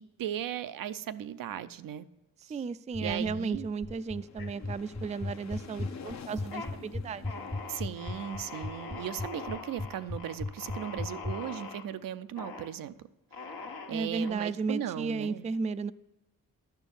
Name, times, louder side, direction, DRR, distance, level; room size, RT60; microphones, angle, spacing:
voice 1, 0.0-2.1 2.5-2.6 3.0-3.6 7.7-13.1 13.9-15.5, right 10 dB, 70° right, 12 dB, 0.5 m, -37 dB
voice 2, 2.5-7.6 13.9-15.9, right 4 dB, 20° right, 13 dB, 0.3 m, -34 dB
sound 1, 2.9-11.3, left 2 dB, 10° left, 0.6 m, -35 dB
sound 2, 3.6-10.3, left 6 dB, 50° left, 0.7 m, -50 dB
sound 3, 4.4-5.1 5.5-6.0 6.3-6.7 7.2-11.8 12.4-12.7 13.3-14.3, left 4 dB, 75° left, 1.3 m, -43 dB
11.0 x 4.6 x 7.0 m, 0.96 s
supercardioid pair, 50°, 35 cm